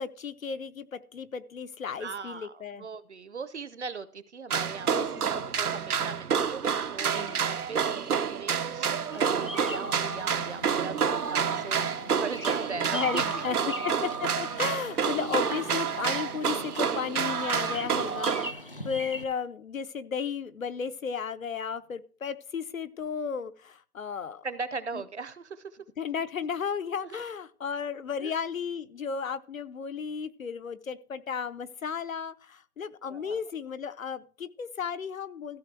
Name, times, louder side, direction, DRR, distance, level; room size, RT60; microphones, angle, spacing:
voice 1, 0.0-2.9 4.9-5.7 7.1-7.4 12.9-13.6 13.8-24.5 26.0-35.6, left 6 dB, 65° left, 13 dB, 0.8 m, -34 dB
voice 2, 2.0-13.7 24.4-25.8 27.0-27.2 28.2-28.3 33.1-33.4, right 5 dB, 50° right, 14 dB, 0.8 m, -39 dB
sound 1, 4.5-18.5, right 7 dB, 85° right, 1.0 m, -29 dB
Bird vocalization bird call bird song, 9.1-19.2, left 1 dB, 40° left, 0.4 m, -42 dB
14.5 x 5.9 x 4.6 m, 0.43 s
hypercardioid pair, 175°, 44 cm